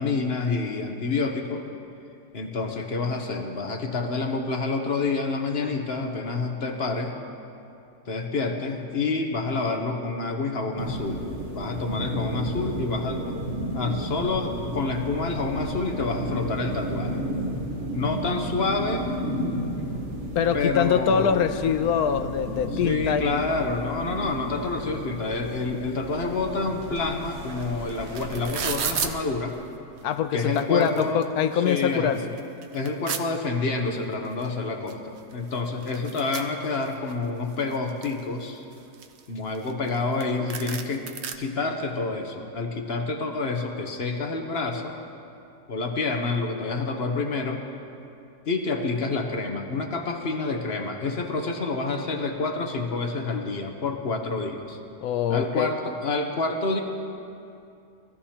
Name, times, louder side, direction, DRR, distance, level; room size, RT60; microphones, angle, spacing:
voice 1, 0.0-1.6 2.3-7.1 8.1-11.3 11.5-13.2 13.7-17.2 17.9-19.1 20.5-21.4 22.7-29.6 30.3-31.2 31.6-32.1 32.7-38.6 39.3-41.1 41.4-45.0 45.7-47.6 48.4-54.8 55.3-56.8, left 3 dB, 45° left, 4 dB, 1.0 m, -28 dB
sound 1, 10.8-29.1, equal, 45° right, 1.6 m, -33 dB
voice 2, 20.4-23.5 30.0-32.4 55.0-55.7, left 7 dB, 70° left, 10 dB, 1.0 m, -24 dB
sound 2, 27.6-27.7 27.9-29.1 30.0-30.1 30.4-31.2 31.7-31.8 32.1-33.2 34.4-34.5 34.9-35.0 35.2-37.1 37.5-38.2 38.7-39.9 40.2-40.3 40.5-41.3, right 7 dB, 60° right, 0.7 m, -32 dB
20.5 x 14.0 x 2.9 m, 2.6 s
omnidirectional pair, 1.8 m